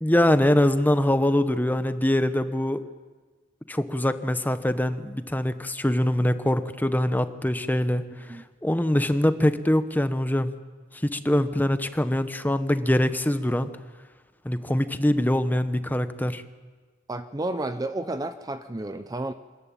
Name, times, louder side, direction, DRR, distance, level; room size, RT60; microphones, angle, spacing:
voice 1, 0.0-2.8 3.7-10.5 10.9-13.7 14.4-16.4, left 1 dB, 10° left, 11 dB, 0.8 m, -23 dB
voice 2, 17.1-19.3, right 2 dB, 20° right, 10 dB, 0.6 m, -31 dB
25.0 x 14.0 x 8.9 m, 1.4 s
head